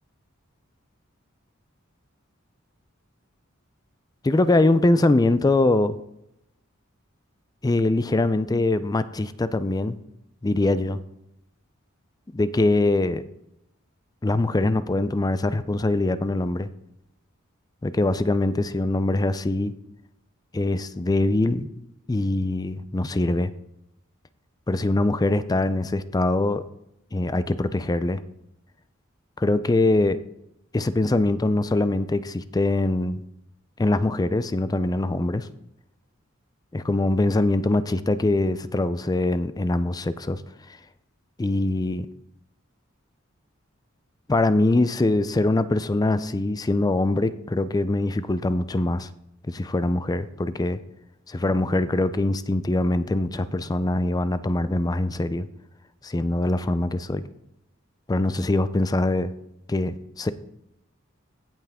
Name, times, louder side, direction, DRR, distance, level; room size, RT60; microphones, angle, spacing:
voice 1, 4.2-5.9 7.6-10.0 10.4-11.0 12.3-13.2 14.2-16.7 17.8-19.7 20.5-21.7 22.1-23.5 24.7-26.6 27.1-28.2 29.4-30.2 30.7-33.2 33.8-35.5 36.7-40.4 41.4-42.1 44.3-49.1 49.5-50.8 51.3-55.5 56.0-57.2 58.1-59.3 59.7-60.3, left 2 dB, 20° left, 14 dB, 0.4 m, -23 dB
16.0 x 5.7 x 3.6 m, 0.81 s
head